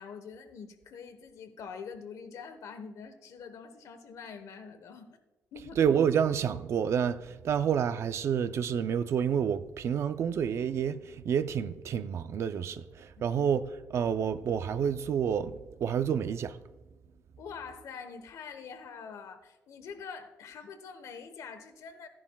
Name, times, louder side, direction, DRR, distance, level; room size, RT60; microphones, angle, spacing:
voice 1, 0.0-5.1 5.5-5.8 13.2-13.4 17.4-22.1, left 6 dB, 75° left, 1.0 m, -45 dB
voice 2, 5.8-16.6, right 8 dB, 55° right, 0.4 m, -29 dB
14.5 x 10.5 x 2.3 m
wide cardioid pair, 180°, 6 cm